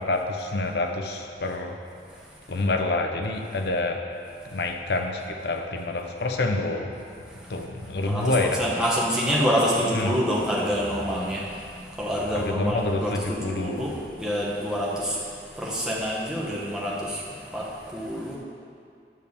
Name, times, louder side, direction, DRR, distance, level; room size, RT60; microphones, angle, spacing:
voice 1, 0.0-1.8 2.5-4.0 4.5-7.0 7.5-8.6 9.9-10.2 12.3-13.9, left 2 dB, 70° left, 4 dB, 0.7 m, -27 dB
voice 2, 8.0-8.3 8.6-15.2 15.6-17.2 17.5-18.4, equal, 5° right, -6 dB, 1.1 m, -27 dB
9.6 x 3.4 x 6.7 m, 2.3 s
head